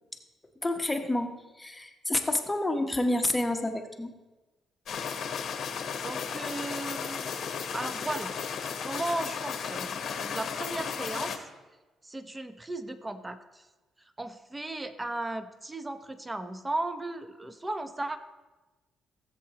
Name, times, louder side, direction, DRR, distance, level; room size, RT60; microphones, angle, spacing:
voice 1, 0.6-4.1, left 1 dB, 15° left, 5 dB, 0.9 m, -29 dB
sound 1, 4.9-11.4, left 6 dB, 65° left, 1.0 m, -34 dB
voice 2, 6.0-7.5 7.7-8.4 8.8-11.4 12.0-13.7 14.2-18.2, right 2 dB, 15° right, 10 dB, 0.7 m, -36 dB
17.0 x 7.7 x 2.9 m, 1.2 s
cardioid pair, 90°, 0 cm